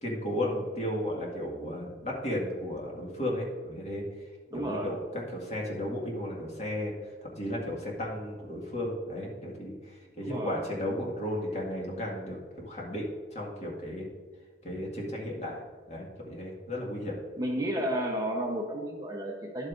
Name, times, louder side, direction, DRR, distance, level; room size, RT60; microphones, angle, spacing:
voice 1, 0.0-4.1 4.5-14.1 14.6-15.6 15.9-17.2, left 1 dB, 35° left, -2 dB, 1.9 m, -34 dB
voice 2, 4.5-4.9 10.2-10.6 17.4-19.7, right 1 dB, 20° right, 0 dB, 0.9 m, -32 dB
10.5 x 8.1 x 2.6 m, 1.5 s
head